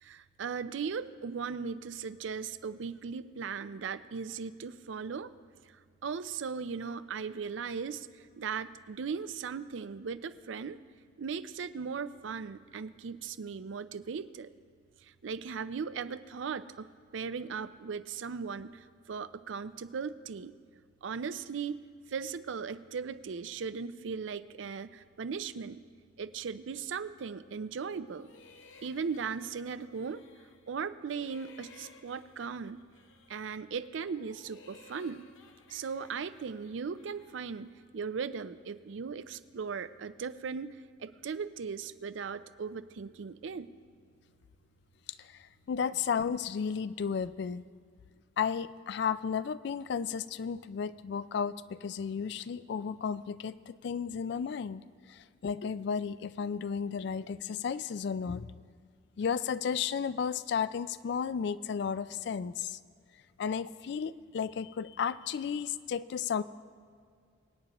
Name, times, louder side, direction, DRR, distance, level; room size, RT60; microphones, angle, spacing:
voice 1, 0.0-5.3 6.0-8.1 8.3-10.8 11.2-14.5 15.2-20.5 21.0-21.8 22.1-25.8 26.2-28.3 28.8-30.2 30.7-32.8 33.3-35.3 35.7-40.7 41.0-43.7, right 5 dB, 75° right, 14 dB, 0.4 m, -38 dB
sound 1, 28.1-30.7 31.0-33.6 34.0-37.8, left 3 dB, 80° left, 0.8 m, -58 dB
voice 2, 45.2-47.6 48.4-54.8 55.1-58.5 59.2-62.8 63.4-66.4, left 6 dB, 60° left, 16 dB, 0.3 m, -33 dB
25.0 x 8.9 x 3.0 m, 2.1 s
head